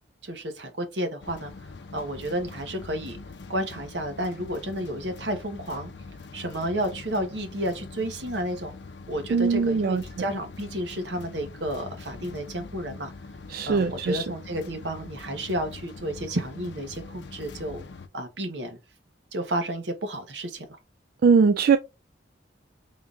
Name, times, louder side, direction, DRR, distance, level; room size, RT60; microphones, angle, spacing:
voice 1, 0.2-1.5 1.9-3.2 3.5-5.9 6.3-8.7 9.1-13.1 13.6-17.8 18.1-18.8 19.3-20.6, right 1 dB, 80° right, 1.0 m, -31 dB
sound 1, 1.2-18.1, left 3 dB, 75° left, 0.5 m, -43 dB
voice 2, 9.3-10.0 13.5-14.3 21.2-21.8, right 5 dB, 55° right, 0.3 m, -21 dB
3.7 x 2.4 x 3.7 m
head